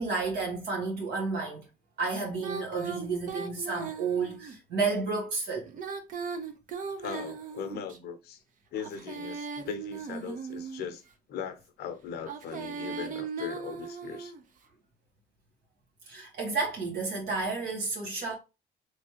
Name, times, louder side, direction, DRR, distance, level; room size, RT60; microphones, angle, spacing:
voice 1, 0.0-1.6 2.0-5.7 16.1-18.3, right 4 dB, 70° right, 1.4 m, -31 dB
Female singing, 2.4-4.5 5.7-8.0 8.8-10.9 12.2-14.4, right 5 dB, 50° right, 0.7 m, -38 dB
voice 2, 7.0-8.4 8.7-11.0 11.3-14.3, left 6 dB, 70° left, 0.7 m, -39 dB
3.3 x 3.2 x 2.9 m
cardioid pair, 110°, 17 cm